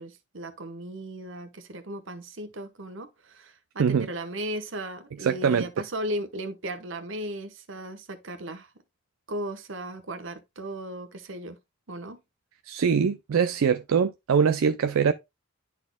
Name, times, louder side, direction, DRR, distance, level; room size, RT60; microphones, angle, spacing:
voice 1, 0.0-8.7 9.3-11.6 11.9-12.2, right 1 dB, 65° right, 1.1 m, -36 dB
voice 2, 5.2-5.7 12.7-15.1, right 6 dB, 80° right, 0.4 m, -23 dB
11.5 x 4.2 x 2.2 m
head